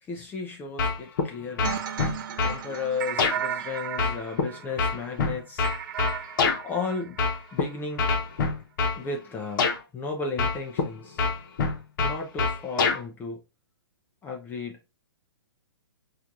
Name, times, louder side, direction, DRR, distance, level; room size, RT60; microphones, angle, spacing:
voice 1, 0.0-1.8 2.3-5.7 6.6-7.2 7.5-8.1 8.9-11.2 12.0-13.4 14.2-14.9, left 4 dB, 15° left, 0.4 m, -34 dB
sound 1, 0.8-1.3 1.6-2.6 3.2-3.4 4.0-6.6 7.2-7.6 8.0-9.0 9.6-9.8 10.4-10.9 11.2-13.0, left 4 dB, 50° left, 0.8 m, -25 dB
sound 2, 1.6-7.7, right 9 dB, 55° right, 0.4 m, -35 dB
4.4 x 2.4 x 2.5 m
hypercardioid pair, 130°, 13 cm